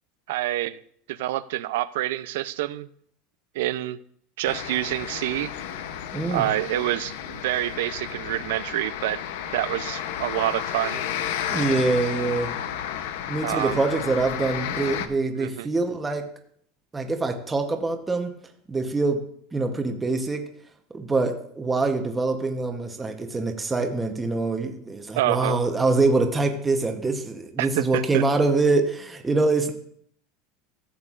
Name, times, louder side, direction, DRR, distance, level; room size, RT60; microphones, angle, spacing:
voice 1, 0.3-0.8 1.1-2.9 3.5-4.0 4.4-5.5 6.3-9.2 9.5-11.0 13.4-13.8 15.3-15.7 25.2-25.6 27.6-28.2, right 15 dB, 75° right, 15 dB, 0.4 m, -27 dB
sound 1, 4.4-15.1, left 9 dB, 75° left, 0.7 m, -32 dB
voice 2, 6.1-6.5 11.5-12.5 13.3-16.2 16.9-18.3 18.7-19.2 19.5-20.4 20.9-29.7, right 3 dB, 10° right, 5 dB, 0.9 m, -24 dB
15.0 x 7.6 x 2.5 m, 0.64 s
supercardioid pair, 160°, 0 cm